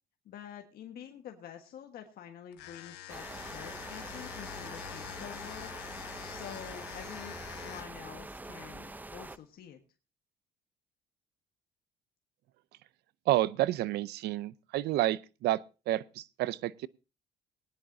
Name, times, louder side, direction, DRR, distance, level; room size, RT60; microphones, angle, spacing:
voice 1, 0.2-5.9 6.3-9.8, left 9 dB, 65° left, 1.5 m, -48 dB
sound 1, 2.5-8.1, left 13 dB, 85° left, 1.1 m, -45 dB
sound 2, 3.1-9.4, right 2 dB, 10° right, 0.5 m, -44 dB
voice 2, 13.3-16.9, right 15 dB, 75° right, 0.6 m, -30 dB
19.5 x 10.0 x 2.7 m
cardioid pair, 110°, 17 cm